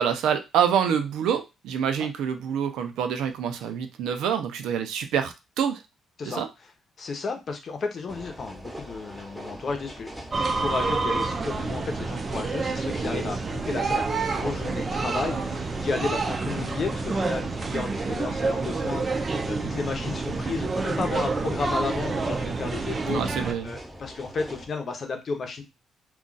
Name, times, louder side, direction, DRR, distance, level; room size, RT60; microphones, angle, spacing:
voice 1, 0.0-5.8 6.3-6.5 23.1-23.8, right 8 dB, 85° right, 8 dB, 0.5 m, -26 dB
voice 2, 7.0-23.3 23.6-25.6, left 4 dB, 50° left, 4 dB, 0.8 m, -33 dB
sound 1, 8.1-24.7, equal, 5° right, 0.9 m, -42 dB
sound 2, 10.3-23.5, right 3 dB, 35° right, 0.5 m, -28 dB
2.4 x 2.3 x 3.9 m, 0.24 s
cardioid pair, 90°, 0 cm